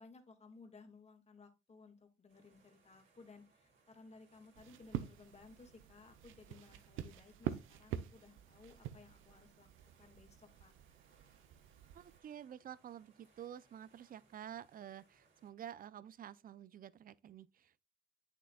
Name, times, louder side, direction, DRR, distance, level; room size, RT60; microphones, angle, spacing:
voice 1, 0.0-9.7 10.0-10.7, left 4 dB, 35° left, 1.7 m, -59 dB
sound 1, 2.3-15.5, right 4 dB, 70° right, 2.9 m, -72 dB
sound 2, 4.5-12.2, right 11 dB, 90° right, 0.7 m, -47 dB
voice 2, 11.9-17.8, right 10 dB, 45° right, 0.5 m, -50 dB
8.5 x 6.7 x 2.3 m
cardioid pair, 90°, 20 cm